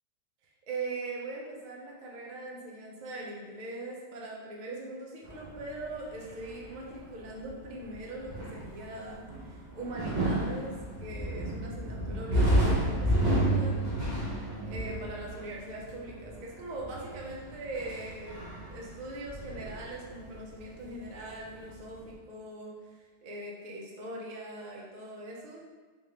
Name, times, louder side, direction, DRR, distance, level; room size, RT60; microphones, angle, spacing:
voice 1, 0.7-13.8 14.7-25.6, right 2 dB, 70° right, -3 dB, 0.4 m, -41 dB
sound 1, 5.2-21.2 21.4-22.1, right 1 dB, 35° right, 0.7 m, -31 dB
3.6 x 3.5 x 2.9 m, 1.4 s
omnidirectional pair, 1.8 m